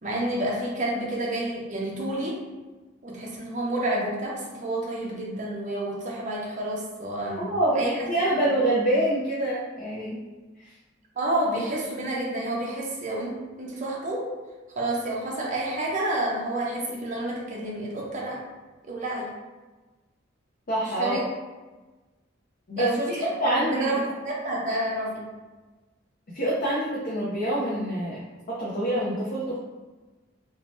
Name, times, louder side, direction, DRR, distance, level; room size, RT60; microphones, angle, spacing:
voice 1, 0.0-2.5 3.0-7.5 7.8-8.1 11.2-14.4 14.8-18.4 18.9-19.3 21.0-21.2 22.8-25.2, right 1 dB, 40° right, -4 dB, 0.6 m, -29 dB
voice 2, 7.4-10.2 10.6-10.7 20.7-21.2 22.7-23.9 26.3-28.2 28.5-29.6, right 1 dB, 50° left, -7 dB, 0.6 m, -26 dB
2.6 x 2.1 x 3.0 m, 1.2 s
head